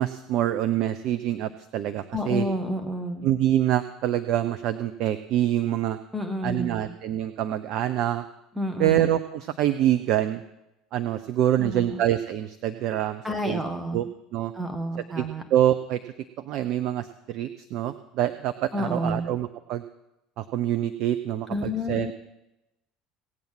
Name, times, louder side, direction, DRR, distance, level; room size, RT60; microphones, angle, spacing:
voice 1, 0.0-2.4 3.2-6.0 6.4-8.2 8.8-10.4 10.9-13.6 13.9-14.1 14.3-14.5 15.2-15.3 15.5-16.0 16.4-19.8 20.4-22.1, right 12 dB, 50° right, 10 dB, 0.6 m, -25 dB
voice 2, 2.1-3.3 6.1-6.9 8.5-9.0 11.6-12.0 13.2-14.0 14.5-15.4 18.7-19.3 21.5-22.1, equal, 10° right, 5 dB, 1.6 m, -30 dB
17.5 x 8.7 x 6.0 m, 0.90 s
figure-of-eight pair, 65°, 0 cm